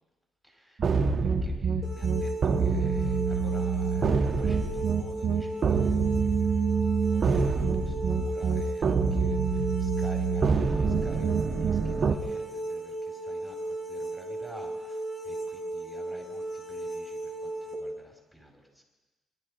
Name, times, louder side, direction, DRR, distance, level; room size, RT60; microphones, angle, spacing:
voice 1, 0.4-0.8 1.2-1.7 2.0-18.8, equal, 5° left, 1 dB, 4.9 m, -50 dB
sound 1, 0.8-12.2, right 5 dB, 45° right, 1.0 m, -26 dB
sound 2, 1.8-17.7, right 1 dB, 40° left, 4.3 m, -36 dB
22.0 x 12.0 x 5.1 m, 1.1 s
cardioid pair, 90°, 0 cm